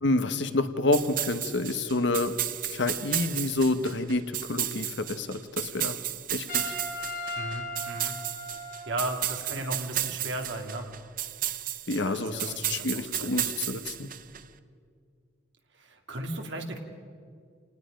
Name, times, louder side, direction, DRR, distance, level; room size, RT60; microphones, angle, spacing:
voice 1, 0.0-2.3 2.6-6.0 6.3-6.6 11.9-14.1, left 2 dB, 60° left, 10 dB, 1.0 m, -28 dB
sound 1, 0.9-14.4, right 12 dB, 45° right, 0.7 m, -33 dB
Trumpet, 6.5-9.2, left 1 dB, 40° left, 5.2 m, -37 dB
voice 2, 7.3-8.2 8.6-10.9 12.0-13.3 15.8-16.8, right 1 dB, 60° right, 3 dB, 2.4 m, -36 dB
29.0 x 19.0 x 5.2 m, 2.2 s
head